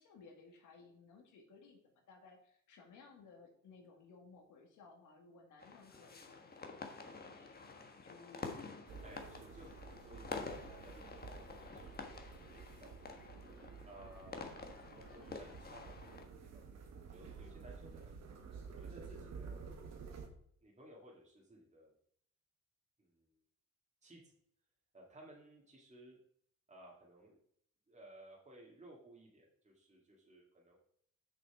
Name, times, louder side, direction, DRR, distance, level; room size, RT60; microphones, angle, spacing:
voice 1, 0.0-7.6 8.0-8.5, left 4 dB, 85° left, 2 dB, 2.0 m, -60 dB
sound 1, 5.6-16.2, left 4 dB, 30° left, 1.4 m, -49 dB
sound 2, 8.9-20.3, right 5 dB, 60° right, 1.5 m, -52 dB
voice 2, 9.0-13.1 13.8-14.5 14.9-18.2 18.8-20.2 20.6-22.0 23.0-23.3 24.0-24.3 24.9-26.2 26.7-27.4 27.9-30.8, right 1 dB, 25° right, -3 dB, 2.1 m, -58 dB
7.0 x 5.9 x 4.8 m, 0.67 s
cardioid pair, 90°, 30 cm